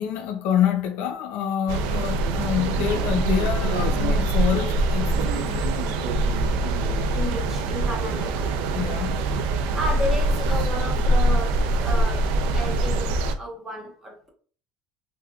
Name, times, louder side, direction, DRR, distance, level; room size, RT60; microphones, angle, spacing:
voice 1, 0.0-6.4 8.7-9.3, left 9 dB, 65° left, 0.5 m, -27 dB
sound 1, 1.7-13.3, right 2 dB, 70° right, 0.4 m, -23 dB
voice 2, 7.1-8.5 9.7-14.3, equal, 10° right, 1.1 m, -33 dB
3.5 x 2.6 x 2.3 m
cardioid pair, 145°, 3 cm